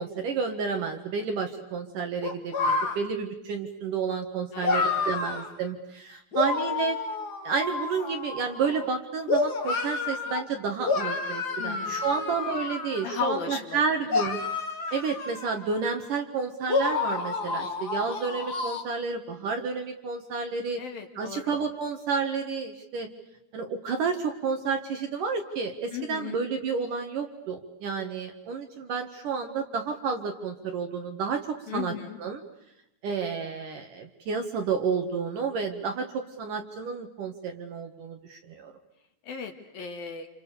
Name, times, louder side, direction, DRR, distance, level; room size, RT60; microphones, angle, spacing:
voice 1, 0.0-7.0 7.4-14.4 14.9-20.8 21.2-23.1 23.5-32.4 33.0-38.7, right 5 dB, 60° right, 4 dB, 2.7 m, -30 dB
sound 1, 2.2-3.0 4.6-5.5 6.3-8.8 9.3-10.4 10.8-13.2 14.1-16.0 16.7-18.8, left 4 dB, 40° left, 1.4 m, -29 dB
voice 2, 4.5-5.1 11.6-12.1 13.0-13.8 20.8-21.6 25.9-26.4 31.7-32.2 39.3-40.3, left 7 dB, 60° left, 4 dB, 3.6 m, -36 dB
29.5 x 28.0 x 6.8 m, 0.87 s
omnidirectional pair, 5.1 m